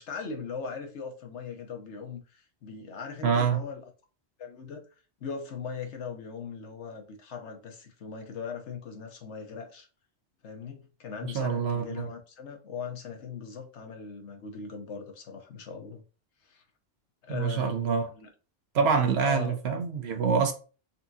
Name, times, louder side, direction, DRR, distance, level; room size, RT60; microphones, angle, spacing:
voice 1, 0.0-3.8 4.4-4.8 5.2-9.9 10.4-16.0 16.5-16.6 17.2-18.3 19.2-19.6, left 5 dB, 75° left, 1.2 m, -39 dB
voice 2, 3.2-3.6 11.2-12.1 17.3-18.1 18.7-20.5, right 6 dB, 65° right, 1.0 m, -26 dB
4.2 x 3.5 x 2.7 m
omnidirectional pair, 1.2 m